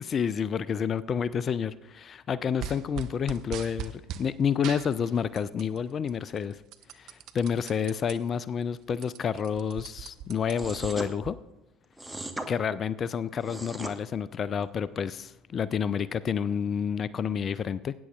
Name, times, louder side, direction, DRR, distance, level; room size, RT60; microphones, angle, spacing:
voice 1, 0.1-6.6 6.9-11.4 12.5-17.9, left 7 dB, 35° left, 18 dB, 0.4 m, -29 dB
sound 1, 2.6-4.3 4.6-5.8 6.1-8.1 8.6-8.7 8.9-11.3, right 8 dB, 50° right, 0.6 m, -40 dB
sound 2, 10.6-11.1 12.0-12.5 13.3-14.0, right 1 dB, 5° right, 1.1 m, -37 dB
19.5 x 9.5 x 2.3 m, 0.97 s
figure-of-eight pair, 60°, 0 cm